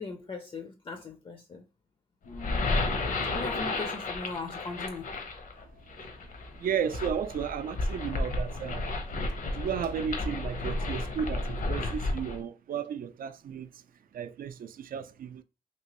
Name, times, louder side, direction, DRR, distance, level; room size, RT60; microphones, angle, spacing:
voice 1, 0.0-1.7 2.3-2.7 3.3-5.1, left 3 dB, 35° left, 0.5 m, -39 dB
sound 1, 2.2-12.4, left 2 dB, 60° left, 0.8 m, -32 dB
voice 2, 6.6-8.8 9.6-13.7 14.1-15.4, right 8 dB, 70° right, 0.4 m, -34 dB
3.0 x 2.9 x 3.0 m
wide cardioid pair, 110°, 15 cm